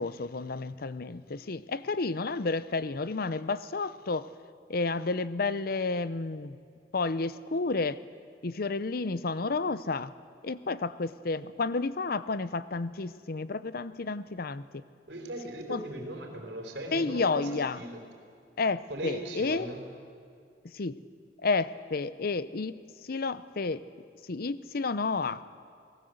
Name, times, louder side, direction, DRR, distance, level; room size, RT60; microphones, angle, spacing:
voice 1, 0.0-4.3 4.7-6.6 6.9-8.0 8.4-10.1 10.4-14.8 15.7-15.8 16.9-17.8 18.6-19.7 20.6-21.0 21.4-23.8 24.2-25.4, left 3 dB, 55° left, 15 dB, 0.7 m, -31 dB
voice 2, 15.1-18.0 18.9-19.8, right 1 dB, 75° right, 2 dB, 4.3 m, -38 dB
29.5 x 18.5 x 8.0 m, 2.3 s
head